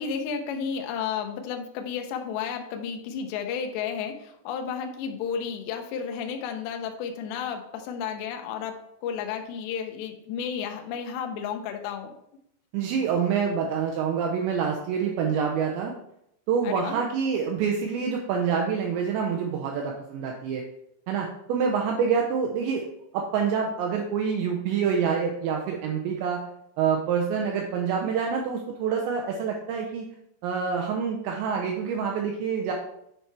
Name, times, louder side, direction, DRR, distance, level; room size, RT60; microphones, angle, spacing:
voice 1, 0.0-12.1 16.6-17.0, left 7 dB, 85° left, 4 dB, 2.5 m, -32 dB
voice 2, 12.7-15.9 16.5-20.6 21.1-22.9 23.1-26.4 26.8-30.1 30.4-32.7, right 6 dB, 85° right, 1 dB, 2.5 m, -26 dB
9.2 x 4.5 x 3.3 m, 0.77 s
omnidirectional pair, 6.0 m